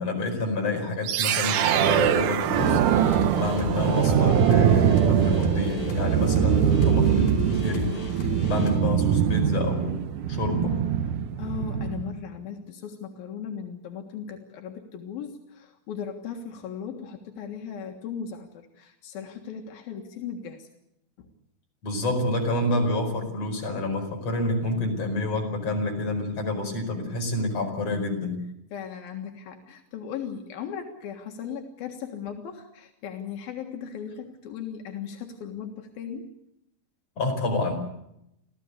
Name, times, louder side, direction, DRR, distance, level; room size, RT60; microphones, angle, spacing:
voice 1, 0.0-2.8 3.4-8.0 8.5-10.8 21.8-28.4 37.2-37.8, left 2 dB, 45° left, 3 dB, 5.9 m, -28 dB
sound 1, 1.0-12.2, right 9 dB, 70° right, 2.4 m, -23 dB
sound 2, 2.4-8.7, left 3 dB, 70° left, 6.8 m, -33 dB
voice 2, 11.4-20.7 21.2-21.3 28.7-36.3, left 7 dB, 85° left, 2 dB, 3.5 m, -37 dB
27.0 x 16.0 x 8.2 m, 0.81 s
omnidirectional pair, 4.1 m